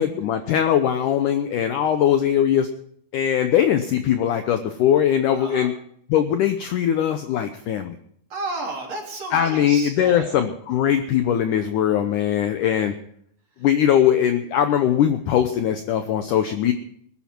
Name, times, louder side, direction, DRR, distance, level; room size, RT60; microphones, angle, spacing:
voice 1, 0.0-2.7 3.1-5.7 6.1-8.0 9.3-12.9 13.6-16.7, left 10 dB, 85° left, 8 dB, 1.8 m, -20 dB
voice 2, 5.3-5.7 8.3-10.4 12.6-12.9 13.6-13.7, right 2 dB, 40° right, -1 dB, 4.1 m, -33 dB
20.5 x 11.5 x 4.5 m, 0.66 s
omnidirectional pair, 4.8 m